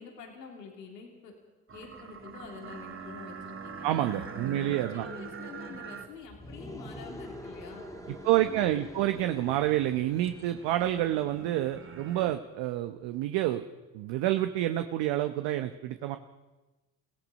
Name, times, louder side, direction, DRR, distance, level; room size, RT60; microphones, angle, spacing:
voice 1, 0.0-1.3 1.7-4.0 4.5-7.8 8.2-9.3, left 5 dB, 90° left, 1 dB, 3.6 m, -47 dB
sound 1, 1.7-12.4, right 5 dB, 25° right, 1.9 m, -45 dB
voice 2, 3.8-5.1 8.2-13.7 13.9-16.2, right 14 dB, 60° right, 8 dB, 1.1 m, -28 dB
sound 2, 6.3-11.3, left 1 dB, 5° left, 2.8 m, -46 dB
28.5 x 17.5 x 5.4 m, 1.2 s
hypercardioid pair, 65°, 48 cm